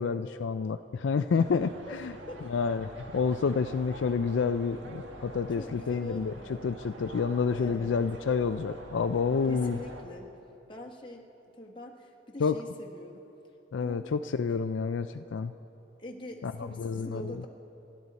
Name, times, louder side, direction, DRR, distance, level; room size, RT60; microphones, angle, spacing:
voice 1, 0.0-1.7 2.0-2.1 2.5-6.3 6.6-9.8 12.4-12.6 13.7-15.5 16.4-16.5 16.8-17.2, left 5 dB, 75° left, 10 dB, 0.4 m, -29 dB
voice 2, 1.3-2.0 2.3-2.4 5.5-6.9 7.5-8.0 9.4-10.3 10.7-13.2 13.8-14.1 14.5-14.6 16.0-17.5, left 1 dB, 25° left, 0 dB, 1.3 m, -44 dB
sound 1, 1.4-10.0, right 1 dB, 75° right, 1.6 m, -46 dB
28.0 x 12.0 x 4.1 m, 3.0 s
head